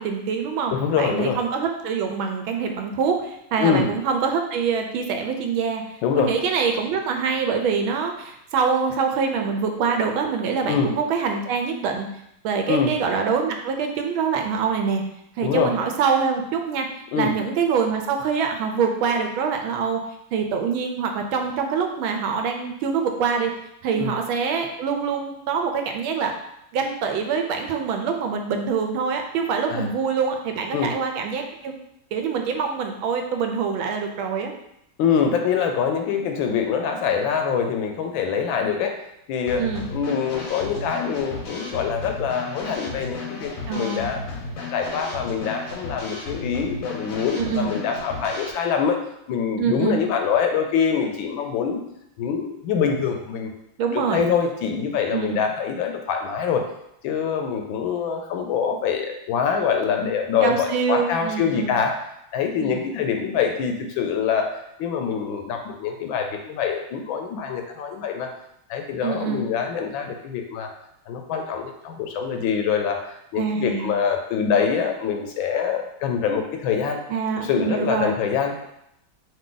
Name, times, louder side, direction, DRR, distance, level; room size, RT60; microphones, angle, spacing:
voice 1, 0.0-5.8 6.1-12.1 12.4-15.0 15.4-16.9 17.2-20.0 20.3-23.5 23.8-26.3 26.7-31.7 32.1-34.5 39.6-39.9 43.7-44.1 47.4-47.7 49.6-50.0 53.8-54.2 55.1-55.4 60.4-61.8 62.6-62.8 69.0-69.5 73.4-73.9 77.1-78.2, right 6 dB, 80° right, 4 dB, 1.4 m, -25 dB
voice 2, 0.7-1.4 3.6-3.9 6.0-6.3 10.7-10.9 12.7-12.9 15.4-15.7 17.1-17.3 23.9-24.1 29.7-29.9 30.7-30.9 35.0-38.9 39.3-39.6 39.9-44.2 44.6-49.0 49.3-51.8 52.2-53.5 53.9-56.6 57.0-61.9 62.3-68.3 68.7-70.7 71.1-77.0 77.4-78.6, left 7 dB, 75° left, 4 dB, 1.3 m, -24 dB
Drum kit / Snare drum, 39.5-48.5, left 3 dB, 60° left, 0.9 m, -34 dB
5.0 x 2.7 x 3.8 m, 0.79 s
omnidirectional pair, 2.3 m